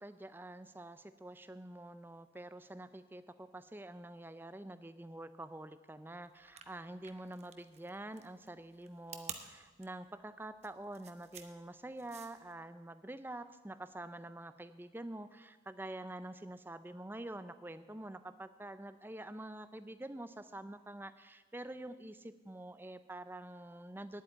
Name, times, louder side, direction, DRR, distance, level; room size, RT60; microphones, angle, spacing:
voice 1, 0.0-24.2, right 1 dB, 10° right, 12 dB, 0.4 m, -47 dB
sound 1, 6.4-12.5, right 8 dB, 35° right, 0.8 m, -50 dB
10.5 x 8.4 x 8.9 m, 1.3 s
head